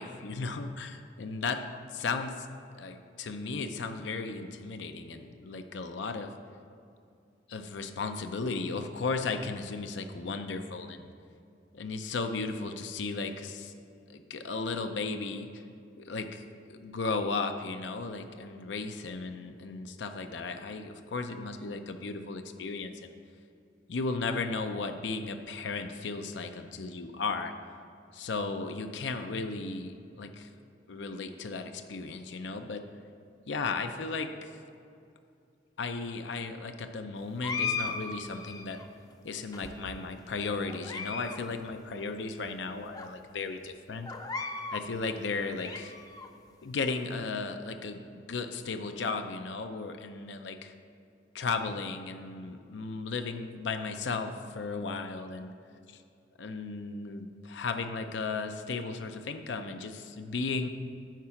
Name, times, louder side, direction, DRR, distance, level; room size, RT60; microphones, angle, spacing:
voice 1, 0.0-1.6 1.9-2.5 2.7-6.3 7.5-11.1 11.7-13.7 14.1-15.6 16.0-16.4 16.7-23.1 23.9-27.5 28.1-30.5 30.9-32.8 33.5-34.5 35.8-38.8 39.2-44.1 44.7-46.0 46.6-50.7 51.3-55.5 55.9-56.0 56.4-60.7, left 4 dB, 90° left, 7 dB, 0.5 m, -35 dB
sound 1, 37.4-38.9 39.5-40.2 40.7-41.4 41.7-41.8 42.5-42.6 42.9-43.1 44.1-44.9 45.3-46.3, left 4 dB, 20° left, 0.5 m, -36 dB
9.2 x 4.8 x 5.8 m, 2.5 s
head